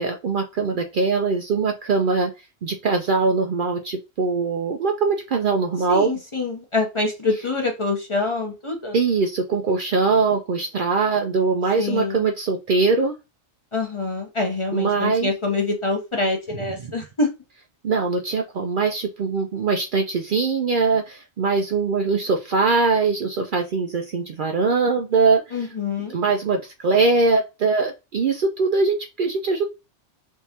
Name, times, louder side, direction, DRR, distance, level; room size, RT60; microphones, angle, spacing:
voice 1, 0.0-2.3 2.6-6.2 8.9-13.1 14.7-15.3 16.8-16.9 17.8-25.7 26.1-29.6, right 4 dB, 60° right, 0.6 m, -22 dB
voice 2, 5.9-9.0 11.8-12.2 13.7-17.3 25.5-26.1, left 3 dB, 30° left, 0.8 m, -25 dB
3.6 x 3.1 x 2.8 m
omnidirectional pair, 1.2 m